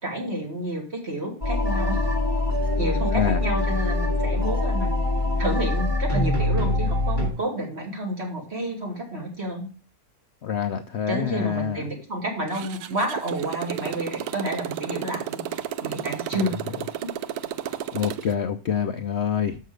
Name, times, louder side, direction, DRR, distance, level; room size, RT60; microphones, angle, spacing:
voice 1, 0.0-2.0 2.8-5.0 5.4-9.7 11.1-15.4 15.8-16.6, right 1 dB, 45° right, -1 dB, 3.2 m, -30 dB
sound 1, 1.4-7.3, left 2 dB, 15° right, 2.5 m, -24 dB
voice 2, 10.4-11.8 17.9-19.6, left 8 dB, 60° left, 6 dB, 0.7 m, -26 dB
Motorcycle, 12.5-18.4, right 10 dB, 80° right, 1.1 m, -32 dB
6.6 x 6.4 x 6.3 m, 0.38 s
omnidirectional pair, 1.6 m